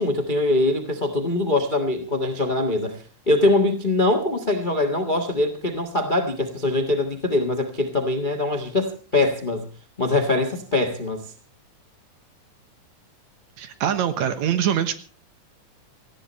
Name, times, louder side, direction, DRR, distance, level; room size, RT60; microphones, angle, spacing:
voice 1, 0.0-9.7 10.0-11.3, left 2 dB, 30° left, 8 dB, 0.8 m, -23 dB
voice 2, 13.6-14.9, right 9 dB, 65° right, 11 dB, 2.3 m, -23 dB
18.5 x 15.0 x 4.2 m, 0.35 s
omnidirectional pair, 3.8 m